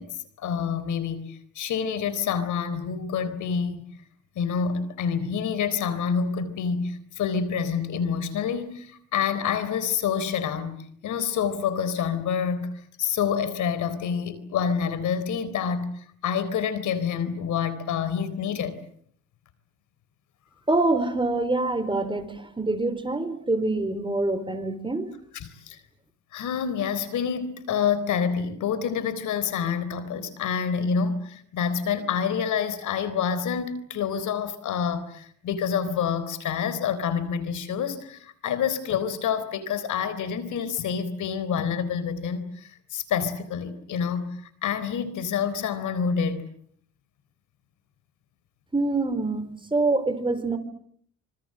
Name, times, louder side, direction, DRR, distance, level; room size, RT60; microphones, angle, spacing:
voice 1, 0.0-3.8 4.4-10.8 11.0-12.7 13.0-18.8 25.3-25.8 26.3-46.4, left 7 dB, 75° left, 3.9 m, -27 dB
voice 2, 20.7-25.1 48.7-50.6, right 2 dB, 15° right, 4.2 m, -25 dB
26.5 x 25.5 x 7.8 m
cardioid pair, 90°, 30 cm